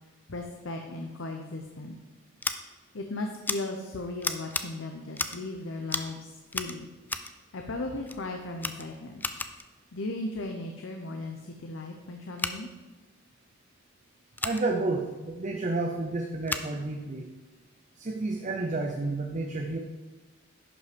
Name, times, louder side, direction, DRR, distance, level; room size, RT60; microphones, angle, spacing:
voice 1, 0.3-2.0 2.9-6.9 7.5-9.2 9.9-12.7, left 2 dB, 60° left, 3 dB, 0.8 m, -36 dB
Scissors, 2.4-2.5 3.4-3.6 4.2-4.6 5.1-5.5 5.9-6.1 6.5-7.3 8.1-8.2 8.6-9.7 12.3-12.5 14.3-14.6 16.4-16.7, left 3 dB, 10° left, 0.3 m, -33 dB
voice 2, 14.4-17.3 18.0-19.8, right 2 dB, 35° right, 3 dB, 0.6 m, -30 dB
11.0 x 5.5 x 5.2 m, 1.2 s
head